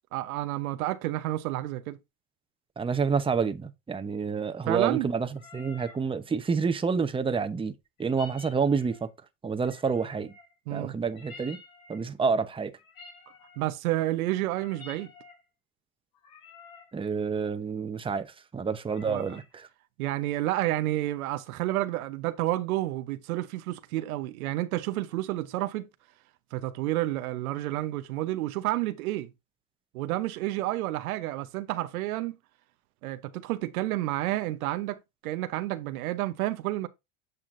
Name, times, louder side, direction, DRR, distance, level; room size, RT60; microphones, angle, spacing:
voice 1, 0.1-2.0 4.7-5.1 10.7-11.0 13.6-15.1 19.1-19.4 20.0-25.8 26.5-29.3 29.9-32.4 33.0-35.0 35.2-36.9, right 16 dB, 85° right, 0.9 m, -30 dB
voice 2, 2.8-7.7 8.0-9.1 9.4-10.3 10.7-11.6 11.9-12.7 16.9-18.3 18.5-19.7, right 5 dB, 10° right, 0.8 m, -28 dB
sound 1, 5.3-6.0 8.0-9.1 9.7-10.6 11.1-12.1 12.8-13.7 14.4-15.4 16.1-16.9 18.8-19.5, left 4 dB, 85° left, 5.2 m, -50 dB
8.7 x 5.9 x 2.6 m
supercardioid pair, 100°, 42 cm